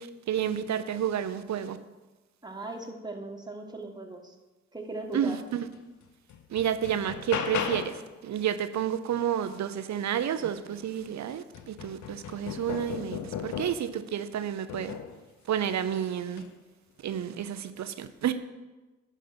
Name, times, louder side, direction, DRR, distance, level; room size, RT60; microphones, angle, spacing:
voice 1, 0.0-1.8 5.1-5.7 6.5-14.9 15.5-16.4 17.0-18.3, right 9 dB, 60° right, 11 dB, 0.7 m, -30 dB
voice 2, 2.4-4.3 4.7-5.4, right 2 dB, 15° right, 2 dB, 1.5 m, -38 dB
sound 1, 5.7-5.8 6.3-8.1 10.5-10.6 11.0-14.0 14.7-15.2 16.3-16.5, left 8 dB, 65° left, 0.7 m, -36 dB
10.5 x 3.7 x 6.0 m, 1.1 s
hypercardioid pair, 40°, 32 cm